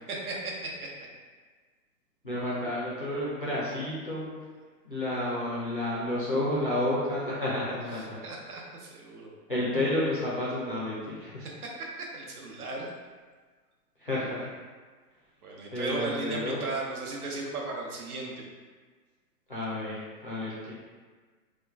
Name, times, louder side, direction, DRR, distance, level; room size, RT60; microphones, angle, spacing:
voice 1, 0.1-0.9 8.0-9.3 11.6-11.7 12.0-12.9 15.4-18.4, right 2 dB, 65° right, -2 dB, 0.8 m, -36 dB
voice 2, 2.2-4.3 4.8-8.2 9.5-11.5 14.0-14.5 15.7-16.6 19.5-20.7, left 1 dB, 35° left, -8 dB, 0.4 m, -31 dB
2.9 x 2.2 x 3.5 m, 1.5 s
hypercardioid pair, 175°, 48 cm